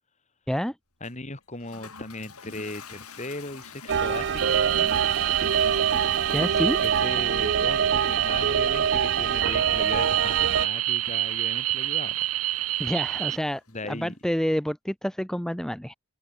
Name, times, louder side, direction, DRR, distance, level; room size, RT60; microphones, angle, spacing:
Toilet flush, 1.0-13.8, left 5 dB, 85° left, 7.9 m, -48 dB
voice 1, 1.0-5.0 6.6-12.2 12.6-12.7 13.7-14.2, left 2 dB, 35° left, 4.7 m, -38 dB
sound 1, 3.9-10.7, right 6 dB, 55° right, 0.5 m, -25 dB
sound 2, 4.4-13.4, right 15 dB, 80° right, 1.6 m, -27 dB
voice 2, 6.3-6.8 12.8-15.9, equal, ahead, 0.6 m, -28 dB
head